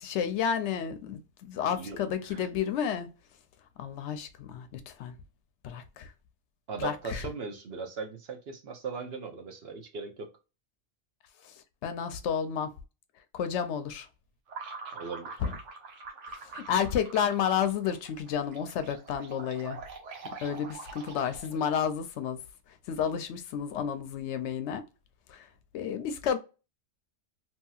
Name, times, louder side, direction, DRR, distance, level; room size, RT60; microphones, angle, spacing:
voice 1, 0.0-3.1 3.8-5.1 5.6-6.1 6.8-7.2 11.8-12.7 13.3-14.1 15.4-15.5 16.5-19.8 20.4-22.4 22.9-24.8 25.3-25.5 25.7-26.4, left 8 dB, 75° left, 0.8 m, -31 dB
voice 2, 1.7-2.0 2.3-2.4 6.7-10.3 14.9-15.4, right 5 dB, 60° right, 0.9 m, -38 dB
sound 1, 14.5-21.7, right 4 dB, 85° right, 1.1 m, -44 dB
2.9 x 2.7 x 2.3 m
omnidirectional pair, 1.2 m